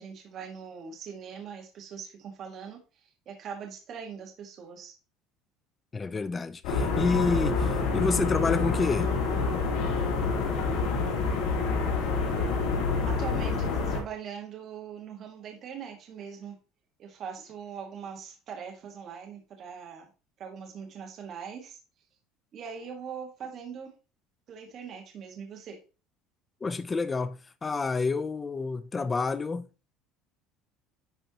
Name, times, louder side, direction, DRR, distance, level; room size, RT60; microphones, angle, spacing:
voice 1, 0.0-4.9 13.0-16.5 17.0-20.1 20.4-21.8 22.5-23.9 24.5-25.8, right 7 dB, 35° right, 1.5 m, -41 dB
voice 2, 5.9-9.1 26.6-29.7, left 4 dB, 15° left, 0.5 m, -29 dB
sound 1, 6.6-14.0, left 4 dB, 80° left, 2.9 m, -27 dB
10.5 x 4.4 x 2.8 m
cardioid pair, 165°, 0 cm